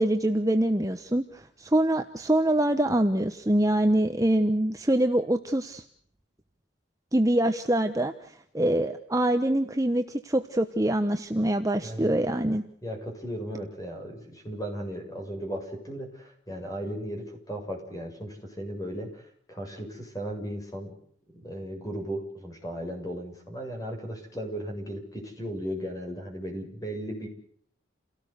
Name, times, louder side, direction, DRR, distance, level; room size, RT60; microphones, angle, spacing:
voice 1, 0.0-5.8 7.1-12.7, right 1 dB, 15° right, 7 dB, 1.1 m, -25 dB
voice 2, 12.8-20.9 21.4-27.3, equal, 15° left, 3 dB, 7.4 m, -36 dB
29.5 x 17.5 x 8.2 m, 0.65 s
head